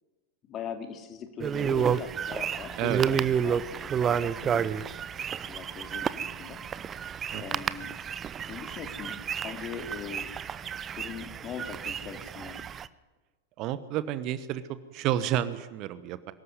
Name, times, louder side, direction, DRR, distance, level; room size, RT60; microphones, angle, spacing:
voice 1, 0.4-4.7 5.5-6.6 7.3-7.9 8.5-10.3 10.9-12.6, left 7 dB, 30° left, 6 dB, 2.7 m, -40 dB
sound 1, 1.4-12.9, right 8 dB, 25° right, 0.8 m, -31 dB
voice 2, 13.6-14.6 14.9-16.3, right 12 dB, 40° right, 14 dB, 1.1 m, -30 dB
23.5 x 14.0 x 9.6 m, 1.3 s
figure-of-eight pair, 90°, 0 cm